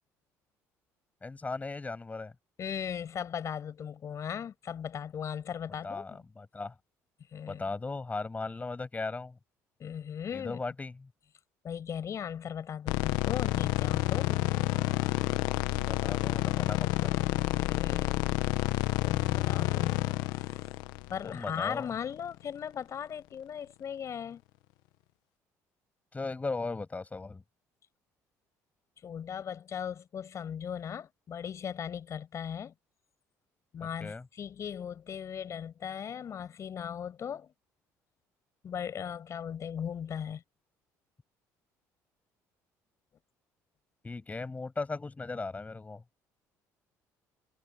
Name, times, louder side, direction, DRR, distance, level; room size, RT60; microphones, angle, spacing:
voice 1, 1.2-2.3 5.8-6.7 7.5-9.4 10.3-11.1 15.8-17.2 21.2-21.9 26.1-27.4 33.8-34.3 44.0-46.0, left 3 dB, 20° left, 7.8 m, -37 dB
voice 2, 2.6-6.2 7.3-7.6 9.8-10.6 11.6-14.5 17.5-18.4 19.0-19.9 20.3-20.4 21.1-24.4 29.0-32.7 33.7-37.5 38.6-40.4, left 8 dB, 50° left, 6.3 m, -38 dB
sound 1, 12.9-22.1, left 19 dB, 80° left, 1.1 m, -29 dB
supercardioid pair, 80°, 7 cm